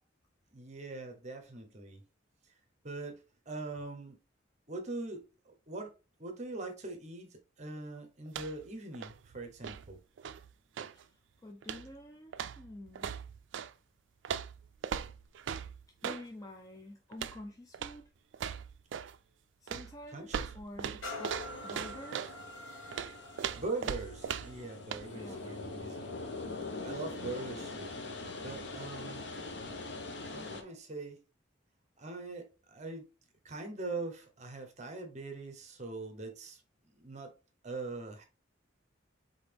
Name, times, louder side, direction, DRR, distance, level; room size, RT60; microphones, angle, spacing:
voice 1, 0.5-2.0 2.8-4.2 4.7-5.9 6.2-10.0 20.1-20.5 23.6-26.2 26.8-27.9 28.4-29.3 30.3-31.2 32.0-33.1 33.4-36.6 36.9-37.3 37.6-38.2, right 3 dB, 35° right, 0.9 m, -42 dB
sound 1, 8.3-8.7 8.9-11.0 11.6-12.0 12.3-13.7 14.2-16.3 17.1-17.4 17.7-18.0 18.3-19.2 19.7-22.4 22.9-24.6 24.9-25.1, right 8 dB, 70° right, 0.3 m, -39 dB
voice 2, 10.9-13.1 16.0-18.1 19.6-21.4 21.6-22.3 25.1-25.5, left 1 dB, 20° left, 0.4 m, -48 dB
sound 2, 21.0-28.6 29.2-29.3, left 2 dB, 80° left, 1.1 m, -48 dB
sound 3, 21.5-30.6, left 3 dB, 60° left, 0.8 m, -43 dB
4.0 x 3.8 x 3.3 m
head